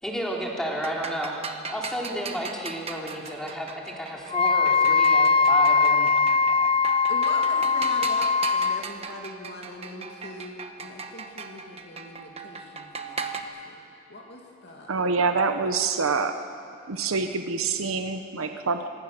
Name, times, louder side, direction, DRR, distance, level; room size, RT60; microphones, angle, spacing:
voice 1, 0.0-1.4 1.7-6.7, equal, 5° left, -2 dB, 3.2 m, -32 dB
sound 1, 0.7-13.4, right 4 dB, 30° right, 1.2 m, -38 dB
Wind instrument woodwind instrument, 4.3-8.8, left 4 dB, 25° left, 0.4 m, -21 dB
voice 2, 7.1-13.8 14.1-14.9, left 2 dB, 55° left, 0 dB, 2.5 m, -41 dB
voice 3, 14.9-16.4 16.9-18.9, right 4 dB, 85° right, 7 dB, 1.0 m, -26 dB
25.5 x 19.5 x 6.7 m, 2.7 s
head